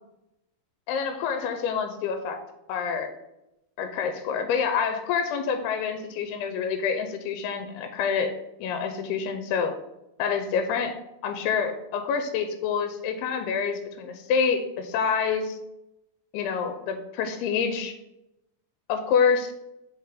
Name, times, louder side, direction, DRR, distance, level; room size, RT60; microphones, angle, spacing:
voice 1, 0.9-2.4 2.7-3.1 3.8-8.3 8.6-9.8 10.2-10.9 11.2-15.6 16.3-17.9 18.9-19.5, left 6 dB, 90° left, 7 dB, 2.7 m, -27 dB
5.9 x 4.8 x 4.9 m, 0.88 s
omnidirectional pair, 4.5 m